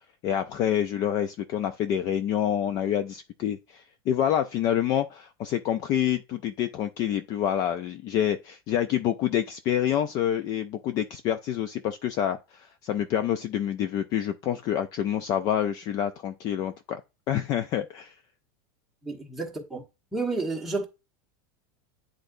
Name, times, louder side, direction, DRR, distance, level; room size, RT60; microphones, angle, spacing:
voice 1, 0.2-17.0 17.3-18.1, left 10 dB, 30° left, 0.4 m, -27 dB
voice 2, 19.0-19.8 20.1-20.9, right 3 dB, ahead, 1.3 m, -30 dB
10.0 x 3.8 x 2.6 m
supercardioid pair, 165°, 12 cm